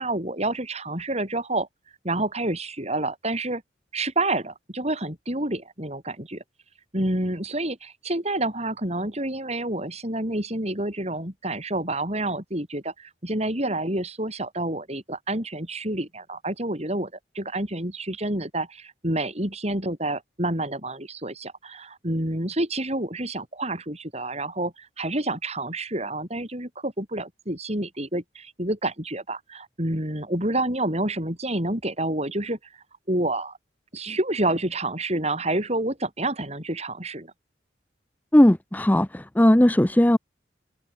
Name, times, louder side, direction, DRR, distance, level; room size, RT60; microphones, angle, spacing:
voice 1, 0.0-1.7 2.0-3.6 3.9-6.4 6.9-32.6 33.1-33.6 33.9-37.3, right 1 dB, 35° right, 7.4 m, -28 dB
voice 2, 38.3-40.2, left 1 dB, 10° left, 0.5 m, -17 dB
open air
head